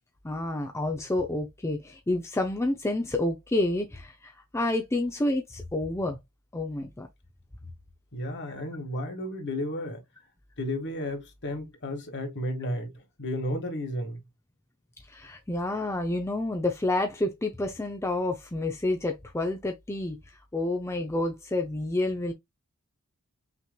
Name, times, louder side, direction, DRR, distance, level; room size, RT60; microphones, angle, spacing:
voice 1, 0.2-6.2 6.5-7.1 15.1-20.2 20.5-22.3, left 2 dB, 10° left, 0.5 m, -29 dB
voice 2, 8.1-10.0 10.6-14.2, left 1 dB, 55° left, 1.7 m, -33 dB
5.8 x 3.0 x 2.2 m
head